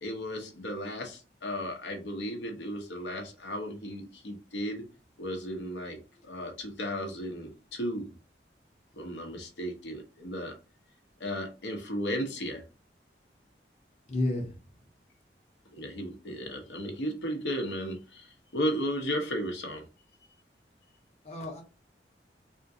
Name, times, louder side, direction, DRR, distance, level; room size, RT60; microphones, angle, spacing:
voice 1, 0.0-4.8 5.2-8.1 8.9-10.5 11.2-12.6 15.7-19.9, equal, 80° left, 2 dB, 0.8 m, -35 dB
voice 2, 14.1-14.6 21.2-21.6, left 2 dB, 40° left, 1 dB, 0.7 m, -31 dB
3.5 x 2.5 x 2.7 m, 0.32 s
head